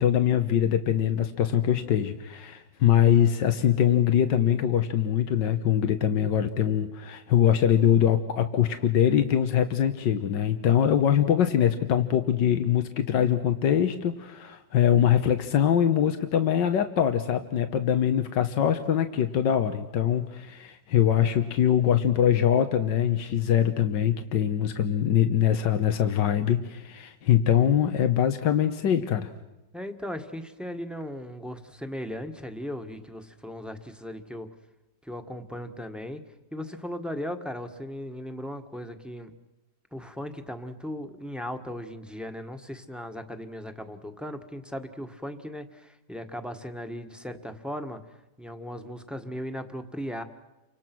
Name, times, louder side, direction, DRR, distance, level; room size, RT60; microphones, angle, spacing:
voice 1, 0.0-29.3, left 9 dB, 90° left, 8 dB, 1.8 m, -23 dB
voice 2, 29.7-34.5 35.0-36.2 36.5-39.3 39.9-48.0 48.4-50.2, equal, ahead, 6 dB, 1.5 m, -37 dB
30.0 x 25.5 x 6.2 m, 1.0 s
omnidirectional pair, 1.9 m